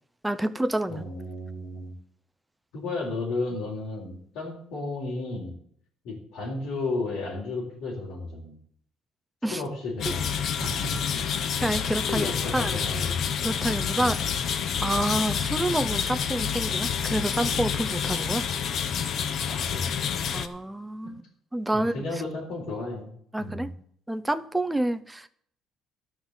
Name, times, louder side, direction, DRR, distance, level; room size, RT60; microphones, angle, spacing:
voice 1, 0.2-1.0 9.4-9.6 11.6-12.8 13.4-14.2 14.8-18.5 20.3-21.2 21.5-21.9 23.3-23.7 24.1-25.3, right 1 dB, 5° right, 0.5 m, -28 dB
voice 2, 0.9-1.9 2.7-5.5 6.0-8.6 9.5-10.2 10.6-11.1 12.1-13.2 14.0-14.1 19.5-20.1 21.7-23.1 23.4-23.7, left 2 dB, 85° left, 4.0 m, -33 dB
sound 1, 10.0-20.5, left 7 dB, 50° left, 0.8 m, -28 dB
13.0 x 6.1 x 7.9 m
cardioid pair, 140°, 0 cm